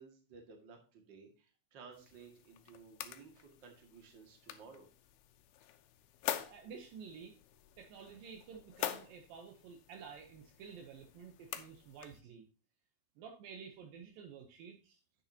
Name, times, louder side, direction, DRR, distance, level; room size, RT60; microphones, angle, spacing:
voice 1, 0.0-4.9, right 5 dB, 35° right, 3 dB, 2.2 m, -56 dB
sound 1, 1.9-12.2, left 12 dB, 85° left, 2.7 m, -46 dB
voice 2, 6.4-7.4 7.8-12.5 13.2-15.0, right 6 dB, 75° right, 3 dB, 2.6 m, -51 dB
10.0 x 8.5 x 2.9 m, 0.35 s
omnidirectional pair, 4.3 m